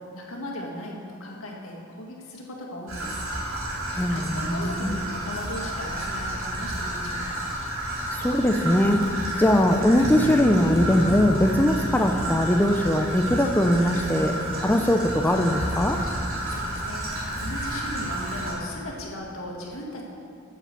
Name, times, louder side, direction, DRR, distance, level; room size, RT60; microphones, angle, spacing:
voice 1, 0.0-3.2 3.6-7.4 16.5-20.1, left 1 dB, 80° left, -1 dB, 1.9 m, -37 dB
Traffic noise roadway noise / Trickle dribble, 2.9-18.5, right 1 dB, 75° right, 3.0 m, -31 dB
voice 2, 3.9-5.0 8.1-9.0 9.4-16.0, left 1 dB, 10° left, 4 dB, 0.4 m, -21 dB
Bass guitar, 10.0-16.3, right 2 dB, 90° right, 0.6 m, -38 dB
9.6 x 7.5 x 6.9 m, 2.5 s
head